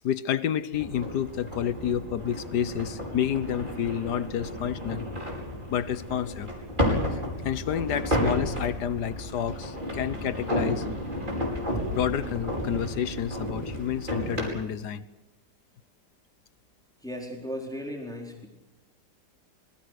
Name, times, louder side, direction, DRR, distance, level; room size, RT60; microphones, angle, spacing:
voice 1, 0.0-5.0 5.7-6.5 7.4-10.9 11.8-15.0, left 9 dB, 70° left, 15 dB, 1.6 m, -29 dB
sound 1, 0.7-14.5, equal, 25° right, 5.6 m, -32 dB
voice 2, 17.0-18.5, equal, ahead, 0 dB, 4.1 m, -36 dB
25.0 x 21.5 x 6.6 m, 0.98 s
omnidirectional pair, 1.9 m